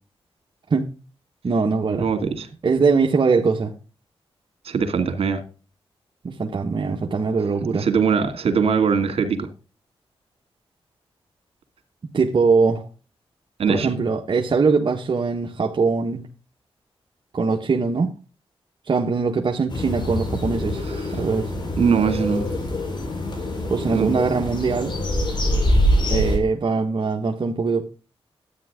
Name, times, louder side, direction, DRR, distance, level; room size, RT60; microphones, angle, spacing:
voice 1, 1.4-2.1 2.6-3.7 6.2-7.9 12.1-12.8 13.7-16.2 17.3-18.1 18.8-20.8 21.1-21.5 23.7-24.9 26.1-27.8, right 4 dB, 50° right, 1.5 m, -21 dB
voice 2, 2.0-2.5 4.6-5.4 7.8-9.5 13.6-13.9 21.8-22.5 23.9-24.1, right 6 dB, 75° right, 2.6 m, -21 dB
sound 1, 19.7-26.4, equal, 50° left, 4.5 m, -24 dB
12.5 x 9.1 x 3.7 m
wide cardioid pair, 95°, 10 cm